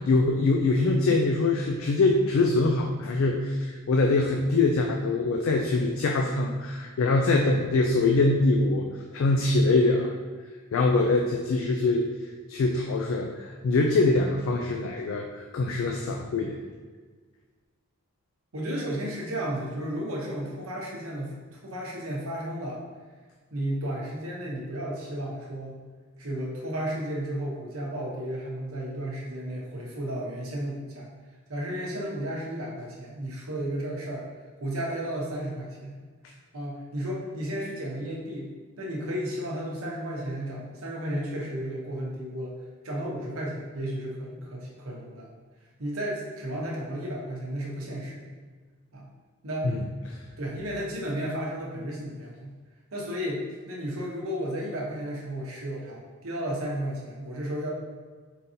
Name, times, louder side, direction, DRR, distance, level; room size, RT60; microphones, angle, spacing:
voice 1, 0.0-10.1 10.7-12.0 12.5-16.6 49.6-49.8, left 3 dB, 70° left, 2 dB, 0.3 m, -23 dB
voice 2, 18.5-22.8 23.5-25.8 26.2-31.1 31.5-34.2 34.6-35.9 36.5-38.5 38.8-42.6 42.8-45.3 45.8-48.3 48.9-49.1 49.4-49.7 50.4-52.5 52.9-57.7, equal, 80° right, -3 dB, 0.9 m, -33 dB
3.9 x 3.8 x 2.7 m, 1.4 s
head